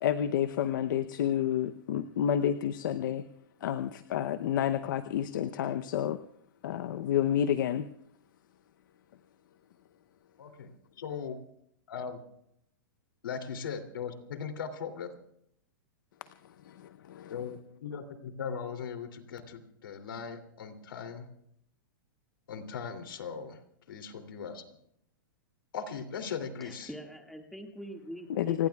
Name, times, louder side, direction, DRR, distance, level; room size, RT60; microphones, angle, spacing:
voice 1, 0.0-3.3 3.6-6.2 6.6-7.9 16.6-17.4 28.3-28.7, left 10 dB, 70° left, 10 dB, 0.8 m, -30 dB
voice 2, 10.4-10.7 11.0-11.4 11.9-12.2 13.2-15.1 17.3-21.3 22.5-23.6 23.9-24.6 25.7-26.9, left 6 dB, 85° left, 7 dB, 2.9 m, -39 dB
voice 3, 26.6-28.7, equal, ahead, 2 dB, 2.0 m, -44 dB
30.0 x 18.0 x 2.4 m, 0.73 s
hypercardioid pair, 145°, 11 cm